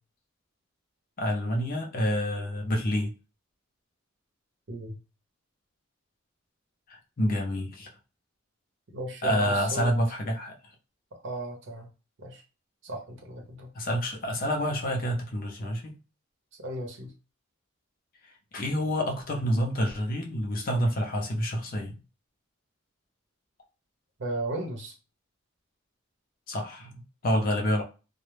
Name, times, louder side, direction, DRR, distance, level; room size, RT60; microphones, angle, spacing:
voice 1, 1.2-3.1 6.9-7.9 9.2-10.5 13.7-16.0 18.5-22.0 26.5-27.8, equal, 45° left, 2 dB, 0.5 m, -28 dB
voice 2, 8.9-9.9 11.1-11.9 12.2-12.4 12.8-13.7 16.6-17.1 24.2-24.9, right 1 dB, 60° right, 2 dB, 0.7 m, -35 dB
2.1 x 2.0 x 3.1 m, 0.32 s
head